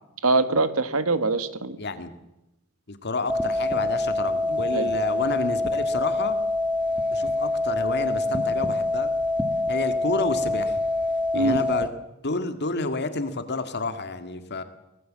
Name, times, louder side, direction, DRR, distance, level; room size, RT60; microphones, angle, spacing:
voice 1, 0.2-1.8 4.7-4.9 11.3-11.6, right 3 dB, 80° right, 12 dB, 1.8 m, -23 dB
voice 2, 1.8-2.1 2.9-6.4 7.1-9.1 9.7-10.8 11.3-11.9 12.2-14.6, left 3 dB, 50° left, 9 dB, 1.9 m, -30 dB
sound 1, 3.3-11.9, left 2 dB, 5° right, 1.7 m, -25 dB
24.5 x 19.5 x 7.5 m, 0.91 s
head